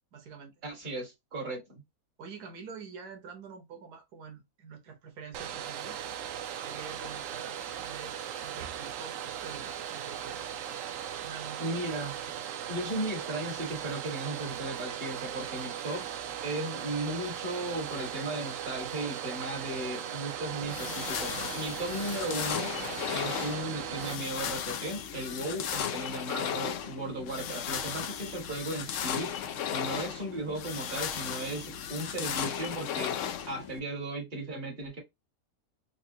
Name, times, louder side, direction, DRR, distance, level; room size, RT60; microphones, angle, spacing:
voice 1, 0.1-0.5 2.2-6.0 6.6-10.5 11.2-11.7, right 5 dB, 85° right, 1.5 m, -46 dB
voice 2, 0.6-1.8 11.6-12.1 12.7-16.1 16.4-22.7 23.1-29.5 29.7-33.1 33.5-35.0, right 1 dB, 30° right, 1.7 m, -36 dB
Domestic sounds home sounds, 5.3-24.2, right 9 dB, 70° right, 0.8 m, -38 dB
sound 1, 20.6-33.8, left 8 dB, 70° left, 0.8 m, -35 dB
4.1 x 2.4 x 2.6 m
omnidirectional pair, 1.6 m